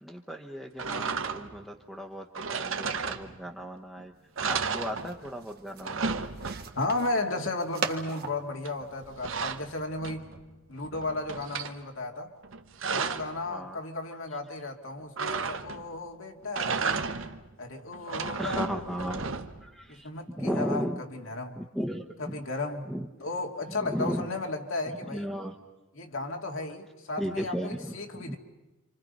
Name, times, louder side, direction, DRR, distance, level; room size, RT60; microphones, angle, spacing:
voice 1, 0.0-2.3 2.6-4.1 4.5-6.2 13.5-13.8 18.4-19.3 19.6-20.1 20.3-21.0 21.5-22.4 22.8-23.1 23.8-24.3 25.1-25.5 27.2-28.4, equal, ahead, -1 dB, 1.2 m, -35 dB
sound 1, 0.8-1.7 2.3-3.6 4.0-4.1 4.4-5.4 5.7-6.9 8.6-10.4 10.8-11.7 12.4-13.4 15.2-16.0 16.4-17.5 17.9-19.7, right 5 dB, 70° right, 1.1 m, -33 dB
sound 2, 4.1-9.7, right 5 dB, 50° right, 1.7 m, -40 dB
voice 2, 6.7-10.3 10.7-12.3 12.9-17.1 17.6-19.3 19.9-21.6 22.2-22.9 23.2-25.3 25.9-28.4, left 2 dB, 75° left, 2 dB, 2.4 m, -34 dB
28.5 x 26.5 x 5.4 m, 1.1 s
head